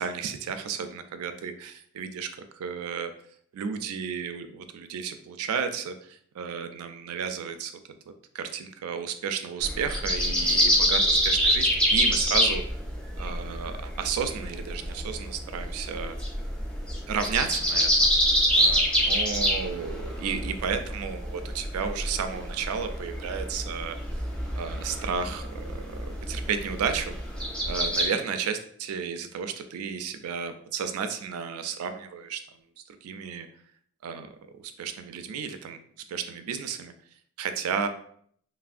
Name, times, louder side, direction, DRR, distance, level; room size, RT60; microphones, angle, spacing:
voice 1, 0.0-2.3 2.5-3.1 3.5-7.7 8.3-12.6 13.2-16.1 17.1-17.9 18.5-24.0 24.6-27.2 27.6-32.4 33.0-33.5 34.0-35.8 36.1-36.9 37.4-37.9, right 6 dB, 85° right, 9 dB, 0.3 m, -32 dB
sound 1, 9.6-28.0, equal, 5° left, 0.4 m, -26 dB
3.3 x 2.1 x 2.4 m, 0.63 s
head